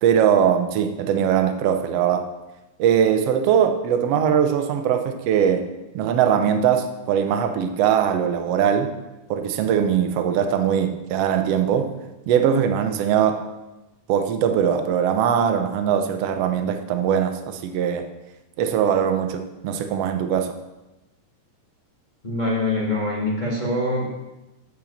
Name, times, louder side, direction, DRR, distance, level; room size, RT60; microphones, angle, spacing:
voice 1, 0.0-2.3 2.8-5.7 5.9-8.9 9.3-11.9 12.3-13.4 14.1-18.1 18.6-20.5, right 8 dB, 75° right, 7 dB, 1.4 m, -21 dB
voice 2, 22.2-24.1, left 2 dB, 20° left, -4 dB, 1.3 m, -24 dB
8.9 x 6.4 x 7.2 m, 1.0 s
omnidirectional pair, 4.0 m